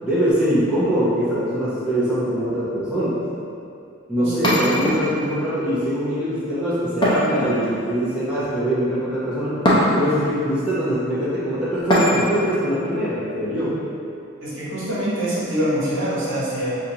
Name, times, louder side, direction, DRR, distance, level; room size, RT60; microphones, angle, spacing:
voice 1, 0.0-3.2 4.1-9.6 9.9-13.8, equal, 5° right, -12 dB, 0.9 m, -23 dB
voice 2, 4.2-4.5 14.4-16.7, equal, 65° right, -9 dB, 1.2 m, -25 dB
sound 1, 4.4-5.4 7.0-8.0 9.6-10.3 11.9-12.5, equal, 20° left, 0.7 m, -20 dB
5.9 x 2.6 x 2.9 m, 2.5 s
head